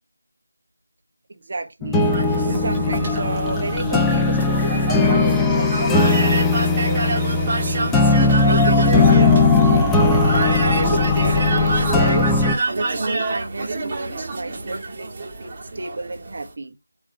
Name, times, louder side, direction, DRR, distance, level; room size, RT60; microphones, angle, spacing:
voice 1, 1.3-2.1 2.4-8.0 8.4-12.3 12.7-16.7, right 3 dB, 40° right, 1.4 m, -31 dB
sound 1, 1.8-12.6, left 3 dB, 5° left, 0.5 m, -18 dB
sound 2, 2.0-16.5, right 3 dB, 25° right, 1.9 m, -28 dB
8.8 x 3.2 x 4.9 m
figure-of-eight pair, 170°, 0 cm